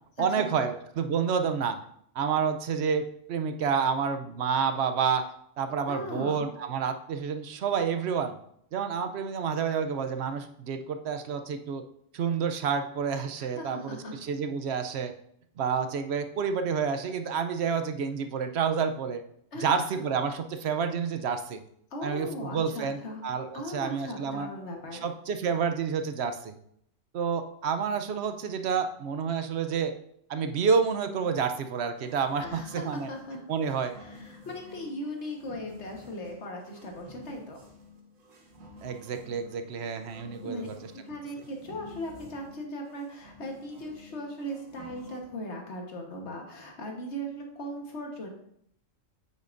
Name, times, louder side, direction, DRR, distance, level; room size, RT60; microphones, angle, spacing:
voice 1, 0.2-1.8 2.1-5.3 5.6-8.4 8.7-11.8 12.1-15.1 15.6-19.2 19.6-21.6 22.0-24.5 25.0-26.5 27.1-29.9 30.3-33.1 33.5-34.0 38.8-40.8, right 6 dB, 60° right, 7 dB, 0.9 m, -29 dB
voice 2, 5.9-6.5 13.4-14.2 19.5-20.0 21.9-23.2 23.5-25.1 32.4-33.4 33.9-37.6 40.4-40.7 41.0-48.3, equal, 60° left, 1 dB, 1.6 m, -38 dB
sound 1, 31.9-45.2, left 2 dB, 80° right, 1.5 m, -51 dB
8.4 x 6.3 x 2.6 m, 0.69 s
omnidirectional pair, 1.3 m